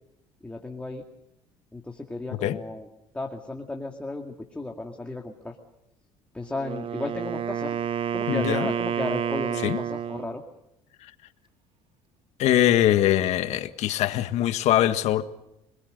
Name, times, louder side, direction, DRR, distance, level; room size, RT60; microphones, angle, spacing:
voice 1, 0.4-1.0 1.7-2.9 3.1-5.6 6.3-7.8 8.1-10.4, left 2 dB, 10° left, 1 dB, 2.3 m, -34 dB
Wind instrument woodwind instrument, 6.5-10.4, right 8 dB, 45° right, 0.9 m, -29 dB
voice 2, 8.3-8.7 9.6-9.8 12.4-15.2, left 13 dB, 70° left, 9 dB, 1.6 m, -22 dB
27.5 x 21.0 x 6.7 m, 0.85 s
cardioid pair, 100°, 12 cm